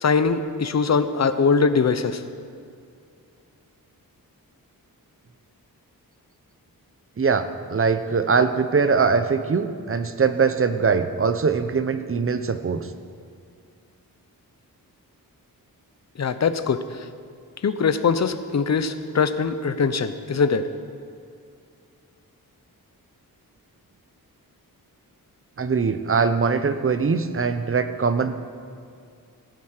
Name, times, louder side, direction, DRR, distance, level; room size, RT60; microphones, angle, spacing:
voice 1, 0.0-2.2 16.2-17.0 17.6-20.7, left 5 dB, 45° left, 11 dB, 0.8 m, -22 dB
voice 2, 7.2-12.9 25.6-28.4, right 5 dB, 35° right, 10 dB, 0.8 m, -22 dB
16.5 x 9.3 x 6.6 m, 2.3 s
wide cardioid pair, 120°, 36 cm